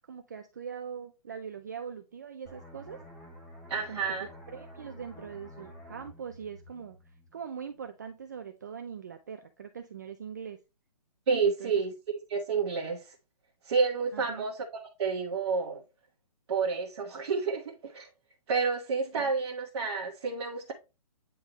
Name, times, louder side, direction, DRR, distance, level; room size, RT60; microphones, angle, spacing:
voice 1, 0.1-3.0 3.9-7.0 7.3-10.6 11.4-11.8 14.1-14.5 19.2-19.3, right 7 dB, 30° right, 0.3 m, -42 dB
sound 1, 2.5-7.8 8.2-8.4, equal, ahead, 0.7 m, -50 dB
voice 2, 3.7-4.3 11.3-11.9 12.3-13.1 13.6-14.6 15.0-15.8 16.5-18.1 18.5-20.7, right 5 dB, 45° right, 1.1 m, -29 dB
8.9 x 3.7 x 3.0 m
hypercardioid pair, 170°, 20 cm